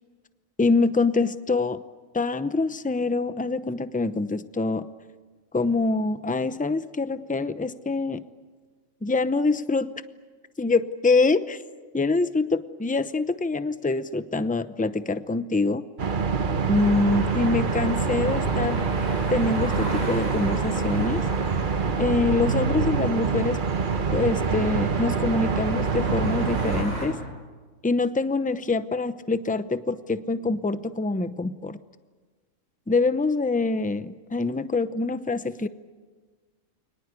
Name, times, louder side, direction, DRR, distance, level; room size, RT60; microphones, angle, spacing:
voice 1, 0.6-1.8 2.1-4.9 5.5-8.2 9.0-9.9 10.6-11.6 11.9-15.8 16.7-18.8 19.3-21.3 22.0-23.6 24.1-27.2 27.8-31.8 32.9-35.7, left 3 dB, 10° left, 12 dB, 0.5 m, -25 dB
sound 1, 16.0-26.8, right 5 dB, 40° right, 1.1 m, -26 dB
sound 2, 16.7-27.1, equal, 80° right, 8.1 m, -35 dB
30.0 x 23.5 x 8.3 m, 1.4 s
omnidirectional pair, 1.4 m